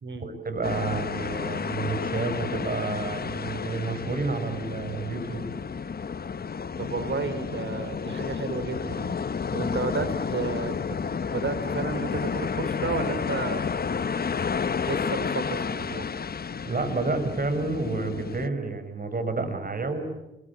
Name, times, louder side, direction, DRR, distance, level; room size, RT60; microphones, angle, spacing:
voice 1, 0.2-5.4 16.6-20.0, right 3 dB, 45° right, 8 dB, 6.4 m, -30 dB
sound 1, 0.6-18.5, left 6 dB, 45° left, 1.1 m, -31 dB
voice 2, 6.8-9.2 9.5-13.6 14.8-16.1, right 4 dB, 60° right, 12 dB, 4.2 m, -32 dB
28.5 x 23.0 x 8.7 m, 0.97 s
cardioid pair, 55°, 21 cm